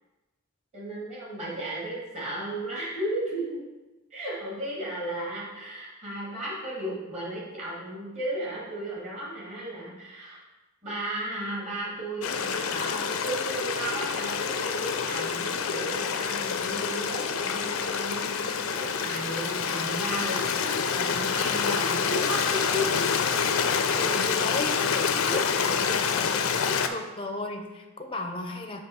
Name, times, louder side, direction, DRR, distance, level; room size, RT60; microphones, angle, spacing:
voice 1, 0.7-3.7 4.1-10.4 10.8-23.0 23.7-24.3 24.9-25.5, right 1 dB, 35° right, -5 dB, 2.2 m, -35 dB
Stream, 12.2-26.9, left 6 dB, 75° left, 0.5 m, -27 dB
voice 2, 24.0-28.8, left 2 dB, 25° left, 4 dB, 0.5 m, -36 dB
7.4 x 3.1 x 5.8 m, 1.1 s
head